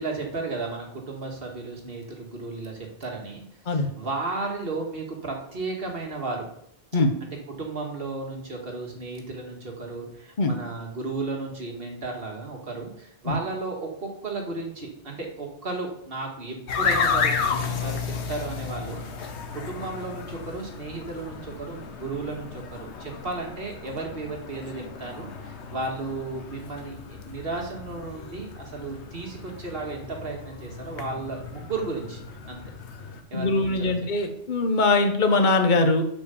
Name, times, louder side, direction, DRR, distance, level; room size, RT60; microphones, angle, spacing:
voice 1, 0.0-6.5 7.2-32.2 32.5-32.6 33.3-33.9, right 3 dB, 55° right, 1 dB, 2.1 m, -34 dB
sound 1, 16.7-33.2, left 5 dB, 70° left, 1.2 m, -33 dB
voice 2, 33.3-36.0, left 3 dB, 45° left, 6 dB, 1.2 m, -22 dB
7.6 x 5.1 x 7.1 m, 0.72 s
omnidirectional pair, 1.2 m